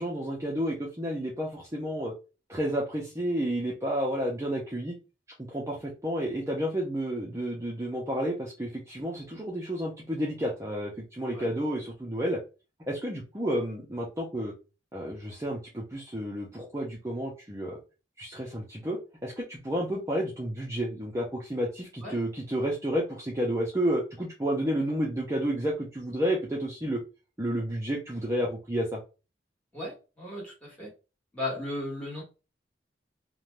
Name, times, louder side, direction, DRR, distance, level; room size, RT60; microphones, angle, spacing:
voice 1, 0.0-2.1 2.5-4.9 5.5-12.4 12.9-14.5 14.9-17.8 18.2-27.0 27.4-29.0, equal, 15° right, 0.5 m, -31 dB
voice 2, 29.7-30.9 31.3-32.2, left 2 dB, 5° left, 1.3 m, -36 dB
2.6 x 2.2 x 3.1 m
head